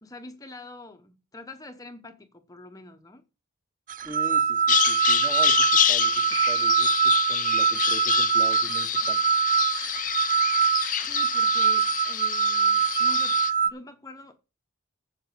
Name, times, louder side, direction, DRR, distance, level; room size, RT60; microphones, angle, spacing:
voice 1, 0.0-3.2 10.9-13.4 13.7-14.4, left 2 dB, 15° left, 0.9 m, -45 dB
sound 1, 3.9-13.7, right 7 dB, 40° right, 0.5 m, -23 dB
voice 2, 4.0-9.2, right 1 dB, 15° right, 1.2 m, -40 dB
Bird vocalization bird call bird song, 4.7-13.5, left 10 dB, 40° left, 0.6 m, -27 dB
Piano, 6.3-7.3, right 9 dB, 75° right, 1.1 m, -42 dB
7.8 x 7.5 x 6.8 m
head